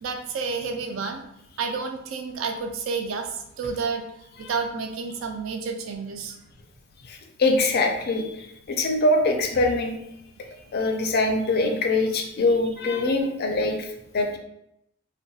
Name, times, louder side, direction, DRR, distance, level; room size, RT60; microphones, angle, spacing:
voice 1, 0.0-1.3 1.6-4.0 4.4-6.4 12.5-12.6, right 5 dB, 65° right, 5 dB, 0.4 m, -30 dB
voice 2, 7.0-10.0 10.7-14.4, left 2 dB, 50° left, 4 dB, 0.4 m, -23 dB
2.7 x 2.2 x 2.6 m, 0.80 s
head